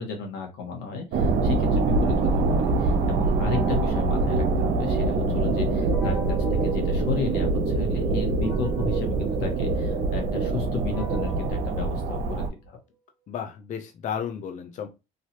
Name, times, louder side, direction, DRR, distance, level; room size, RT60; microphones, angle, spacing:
voice 1, 0.0-6.2 6.5-12.8, left 4 dB, 90° left, 2 dB, 1.3 m, -33 dB
sound 1, 1.1-12.5, right 3 dB, 70° right, 0.8 m, -24 dB
sound 2, 3.4-5.2 5.9-7.7 8.4-12.7, left 2 dB, 5° right, 1.4 m, -45 dB
sound 3, 5.8-11.8, right 6 dB, 55° right, 0.5 m, -34 dB
voice 2, 13.3-14.9, left 8 dB, 45° left, 4 dB, 0.5 m, -33 dB
3.2 x 2.7 x 2.9 m, 0.26 s
cardioid pair, 110°, 17 cm